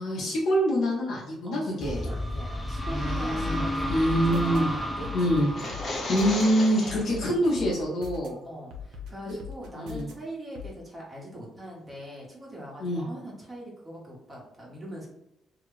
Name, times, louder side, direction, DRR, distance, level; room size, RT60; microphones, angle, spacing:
voice 1, 0.0-2.0 2.9-3.6 3.9-4.7 5.1-5.5 6.1-8.4 9.3-9.4 9.7-10.1 12.8-13.0, equal, 75° left, -4 dB, 1.0 m, -25 dB
voice 2, 1.4-5.7 6.8-7.1 8.4-15.1, right 1 dB, 20° right, -4 dB, 1.3 m, -42 dB
sound 1, 1.8-7.4, left 1 dB, 10° left, 0.5 m, -32 dB
sound 2, 3.4-4.6 5.0-6.4 6.9-8.3 8.7-10.1 10.6-10.7, left 6 dB, 85° right, 0.6 m, -41 dB
sound 3, 5.4-7.2, left 2 dB, 45° left, 0.9 m, -34 dB
2.9 x 2.4 x 3.2 m, 0.86 s
cardioid pair, 90°, 0 cm